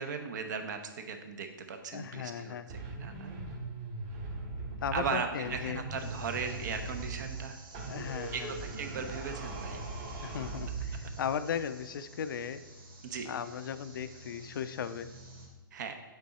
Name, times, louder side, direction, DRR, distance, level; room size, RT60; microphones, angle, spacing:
voice 1, 0.0-3.3 4.9-7.6 8.3-9.8 13.0-13.3 15.7-15.9, right 5 dB, 55° right, 6 dB, 0.9 m, -37 dB
voice 2, 1.9-2.7 4.8-5.8 7.9-8.5 10.2-12.6 13.3-15.1, left 8 dB, 65° left, 13 dB, 0.4 m, -36 dB
sound 1, 2.7-5.2 5.4-7.5 7.7-11.2, right 3 dB, 35° right, 1.4 m, -40 dB
sound 2, 6.0-15.5, right 2 dB, 75° right, 2.0 m, -52 dB
8.3 x 3.9 x 4.1 m, 1.2 s
hypercardioid pair, 155°, 12 cm